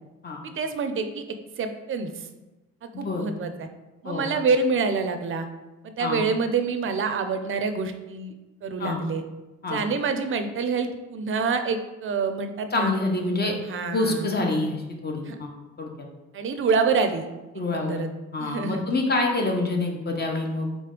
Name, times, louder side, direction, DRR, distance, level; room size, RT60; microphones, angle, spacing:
voice 1, 0.4-1.2 1.6-2.3 3.0-3.7 4.0-5.5 5.8-8.3 8.6-9.2 9.7-12.9 13.6-14.3 15.2-15.4 16.3-17.3 17.7-18.1 18.4-18.8, right 4 dB, 45° right, 7 dB, 0.5 m, -26 dB
voice 2, 2.9-3.3 4.0-4.2 6.0-6.2 8.8-9.0 9.6-9.8 12.7-13.5 13.9-15.5 15.8-15.9 17.6-18.0 18.3-20.7, left 2 dB, 35° left, 1 dB, 0.8 m, -26 dB
4.1 x 3.3 x 3.7 m, 1.1 s
cardioid pair, 90°, 30 cm